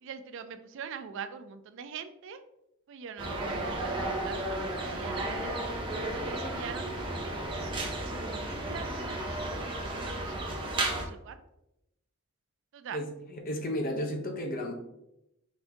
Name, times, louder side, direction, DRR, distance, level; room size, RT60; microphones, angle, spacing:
voice 1, 0.0-2.4 2.9-5.8 6.1-11.4 12.7-13.0, right 6 dB, 60° right, 10 dB, 0.3 m, -43 dB
sound 1, 3.2-11.0, right 1 dB, 25° right, 0.7 m, -33 dB
voice 2, 12.9-14.7, left 1 dB, 40° left, 3 dB, 0.7 m, -33 dB
5.0 x 2.6 x 3.4 m, 0.86 s
head